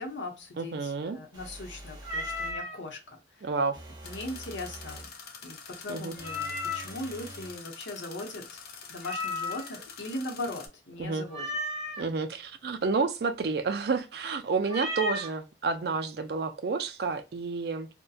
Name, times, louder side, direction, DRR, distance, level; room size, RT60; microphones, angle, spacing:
voice 1, 0.0-3.0 3.3-3.5 4.0-5.1 5.4-8.6 8.9-11.4, left 1 dB, 80° left, 0.8 m, -39 dB
voice 2, 0.6-1.2 3.4-3.8 5.9-6.1 11.0-11.2 12.0-17.9, right 4 dB, 55° right, 0.4 m, -30 dB
sound 1, 1.3-2.6 3.7-5.1 6.2-7.6, right 1 dB, 20° right, 0.7 m, -46 dB
Meow, 2.0-2.8 6.2-7.0 9.0-9.8 11.3-12.0 14.7-15.3, left 2 dB, ahead, 1.1 m, -34 dB
sound 2, 4.0-10.7, left 6 dB, 55° left, 0.5 m, -46 dB
2.7 x 2.1 x 2.3 m
head